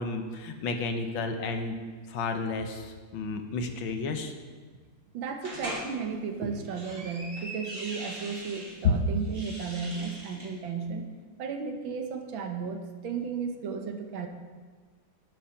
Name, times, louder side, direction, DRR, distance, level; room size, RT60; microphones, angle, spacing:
voice 1, 0.0-1.7 2.1-4.3, left 3 dB, 75° left, 6 dB, 1.7 m, -32 dB
voice 2, 5.1-11.1 11.4-14.3, right 5 dB, 75° right, 5 dB, 1.8 m, -34 dB
sound 1, 5.4-5.9 6.5-8.7 9.2-10.5, right 1 dB, 40° right, 2.6 m, -41 dB
11.0 x 7.7 x 5.7 m, 1.4 s
omnidirectional pair, 2.2 m